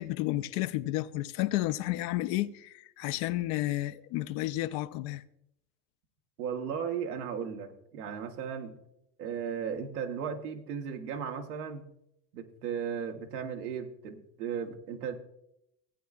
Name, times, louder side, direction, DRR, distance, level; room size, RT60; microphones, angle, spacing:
voice 1, 0.0-5.2, left 16 dB, 65° left, 0.6 m, -31 dB
voice 2, 6.4-8.8 9.2-11.9 12.3-15.1, right 7 dB, 85° right, 1.1 m, -36 dB
15.5 x 8.5 x 2.4 m
hypercardioid pair, 85°, 44 cm